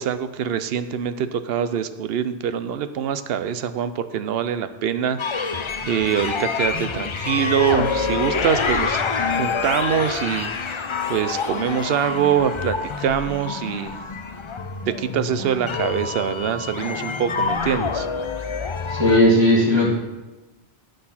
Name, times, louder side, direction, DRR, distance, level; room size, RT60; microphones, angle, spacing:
voice 1, 0.0-9.0 9.4-14.0 14.9-18.1, right 8 dB, 65° right, 11 dB, 0.8 m, -24 dB
sound 1, 5.2-19.2, left 5 dB, 45° left, 0.4 m, -27 dB
voice 2, 18.9-19.9, left 1 dB, 25° right, -4 dB, 2.4 m, -16 dB
9.2 x 6.4 x 5.7 m, 1.1 s
omnidirectional pair, 1.1 m